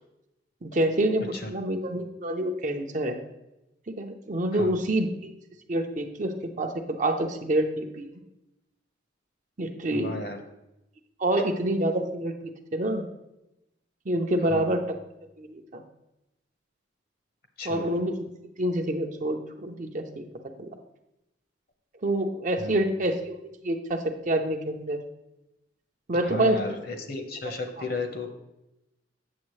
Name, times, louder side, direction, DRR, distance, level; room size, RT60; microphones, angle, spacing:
voice 1, 0.6-3.2 3.9-5.3 5.7-6.7 7.0-8.1 9.6-10.1 11.2-13.0 14.1-14.8 15.4-15.8 17.6-18.1 18.6-20.3 20.6-20.7 22.0-23.4 23.6-25.0 26.1-26.6 27.8-27.9, right 1 dB, 40° right, 5 dB, 0.6 m, -27 dB
voice 2, 9.9-10.4 14.5-14.8 17.6-17.8 22.6-22.9 26.2-28.3, left 2 dB, 50° left, 5 dB, 1.0 m, -34 dB
8.5 x 7.0 x 3.1 m, 0.92 s
head